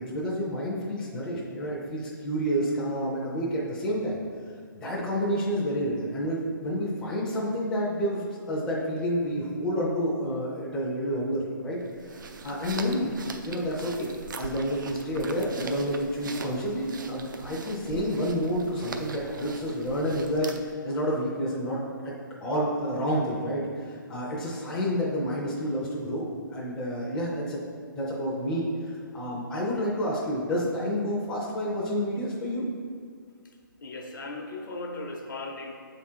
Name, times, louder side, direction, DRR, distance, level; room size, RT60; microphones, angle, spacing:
voice 1, 0.0-4.2 4.7-11.8 12.4-14.1 14.4-21.8 22.0-22.1 22.4-27.6 27.9-28.7 29.1-32.6, equal, 5° left, -7 dB, 0.5 m, -29 dB
sound 1, 11.8-20.8, right 4 dB, 65° right, 0.5 m, -41 dB
voice 2, 33.8-35.7, left 2 dB, 65° left, 2 dB, 0.9 m, -37 dB
6.8 x 3.7 x 4.4 m, 2.1 s
hypercardioid pair, 165°, 11 cm